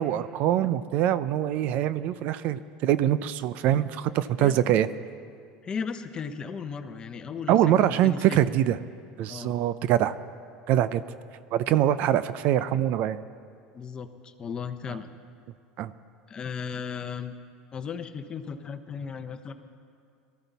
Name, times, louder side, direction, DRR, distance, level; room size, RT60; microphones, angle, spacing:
voice 1, 0.0-4.9 7.5-8.8 9.2-10.1 10.7-11.0 11.5-13.2 15.8-15.9, right 11 dB, 55° right, 15 dB, 0.5 m, -24 dB
voice 2, 5.6-8.4 9.3-9.6 13.7-15.1 16.3-17.3 17.7-19.5, left 6 dB, 25° left, 9 dB, 0.8 m, -36 dB
19.0 x 13.5 x 4.1 m, 2.3 s
supercardioid pair, 125°, 3 cm